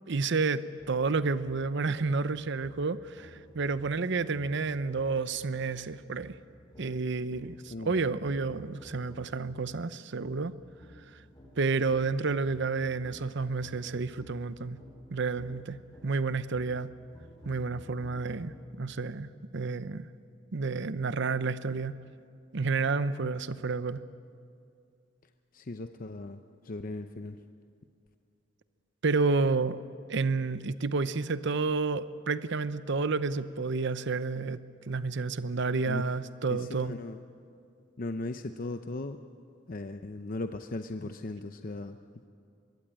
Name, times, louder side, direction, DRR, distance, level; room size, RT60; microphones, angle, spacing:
voice 1, 0.1-6.4 6.8-10.5 11.6-14.8 15.1-16.9 17.4-20.1 20.5-21.9 22.5-24.0 29.0-29.8 30.1-36.9, right 4 dB, 65° right, 14 dB, 0.7 m, -30 dB
sound 1, 0.8-9.5 10.2-18.8, equal, 20° left, 5.6 m, -54 dB
voice 2, 25.5-27.4 35.9-36.1 36.5-37.2 38.0-39.2 39.7-42.0, left 2 dB, 45° left, 8 dB, 0.7 m, -38 dB
24.0 x 21.0 x 8.9 m, 2.4 s
head